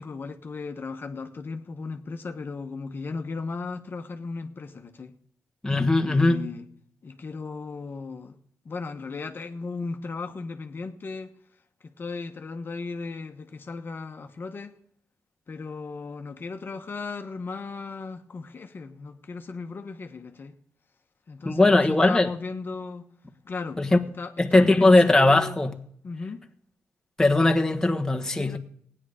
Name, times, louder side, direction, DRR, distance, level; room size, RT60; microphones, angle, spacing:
voice 1, 0.0-5.1 6.0-6.7 7.0-8.4 8.6-11.3 12.0-14.7 15.5-20.5 21.3-23.0 23.4-23.8 24.2-25.6 26.0-26.4 28.4-28.6, left 4 dB, 45° left, 1.1 m, -36 dB
voice 2, 5.6-6.4 21.4-22.3 23.8-24.0 24.4-25.8 27.2-28.6, left 2 dB, 10° left, 1.3 m, -19 dB
16.5 x 9.9 x 5.0 m
cardioid pair, 75°, 5 cm